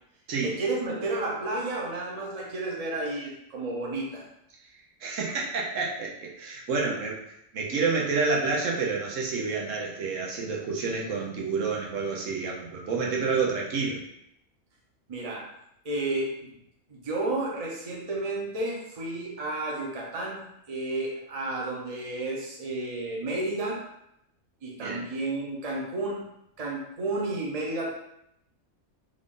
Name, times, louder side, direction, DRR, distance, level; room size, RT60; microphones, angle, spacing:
voice 1, 0.4-4.3 15.1-15.5 15.8-16.5 16.9-20.4 20.7-23.8 24.6-26.2 26.6-27.9, right 2 dB, 35° right, -3 dB, 0.8 m, -31 dB
voice 2, 5.0-6.1 6.4-7.2 7.5-14.0 24.8-25.0, right 4 dB, 85° right, -2 dB, 1.2 m, -29 dB
3.8 x 2.5 x 3.6 m, 0.79 s
omnidirectional pair, 1.3 m